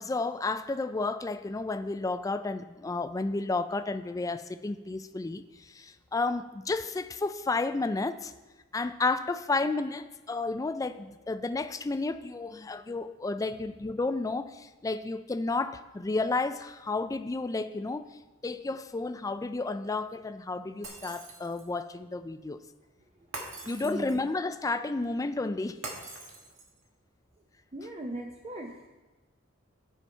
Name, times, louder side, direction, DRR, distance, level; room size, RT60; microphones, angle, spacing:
voice 1, 0.0-8.3 8.7-18.0 18.4-22.6 23.6-25.8, left 3 dB, 15° left, 0.3 m, -32 dB
Shatter, 20.8-21.8 23.3-24.3 25.8-26.8, right 3 dB, 80° right, 1.4 m, -42 dB
voice 2, 23.8-24.2 27.7-28.9, right 1 dB, 30° right, 0.6 m, -38 dB
11.5 x 5.7 x 4.5 m
head